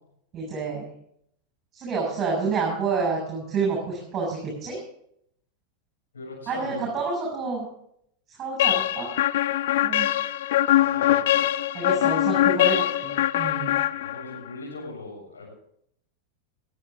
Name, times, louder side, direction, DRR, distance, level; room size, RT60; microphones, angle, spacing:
voice 1, 0.3-0.9 1.7-4.8 6.5-7.7 8.3-9.1 9.8-10.1 11.7-13.8, right 4 dB, 25° right, -2 dB, 7.0 m, -29 dB
voice 2, 6.1-7.0 10.8-11.3 13.8-15.6, left 2 dB, 70° left, -1 dB, 7.3 m, -39 dB
sound 1, 8.6-14.5, left 13 dB, 55° left, 0.5 m, -22 dB
21.0 x 11.0 x 3.8 m, 0.71 s
figure-of-eight pair, 90°, 0 cm